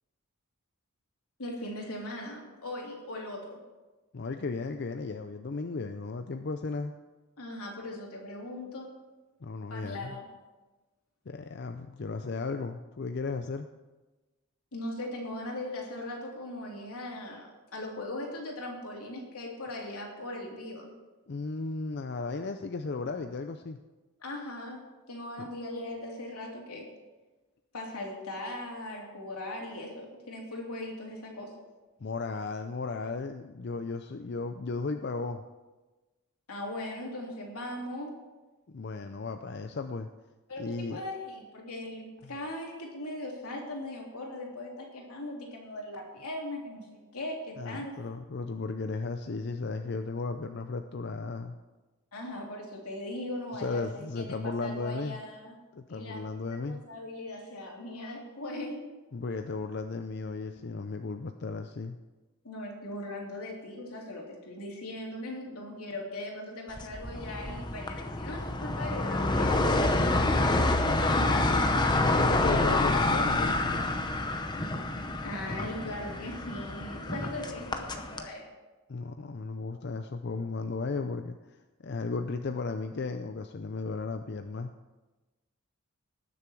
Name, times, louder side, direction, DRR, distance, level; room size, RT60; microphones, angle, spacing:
voice 1, 1.4-3.6 7.4-8.9 9.7-10.2 14.7-20.9 24.2-24.8 25.1-26.9 27.7-31.5 36.5-38.1 40.5-48.0 52.1-55.5 55.9-58.9 62.4-70.0 75.2-78.4, left 1 dB, 85° left, -2 dB, 3.2 m, -39 dB
voice 2, 4.1-7.0 9.4-10.2 11.3-13.7 21.3-23.8 32.0-35.4 38.7-40.1 40.6-41.0 42.2-42.3 47.6-51.5 53.5-55.2 55.7-56.8 59.1-62.0 71.2-73.9 78.9-81.4 81.8-84.7, left 3 dB, 50° left, 7 dB, 0.5 m, -35 dB
sound 1, 66.8-78.2, left 2 dB, 20° left, 0.7 m, -28 dB
19.0 x 6.9 x 4.7 m, 1.2 s
head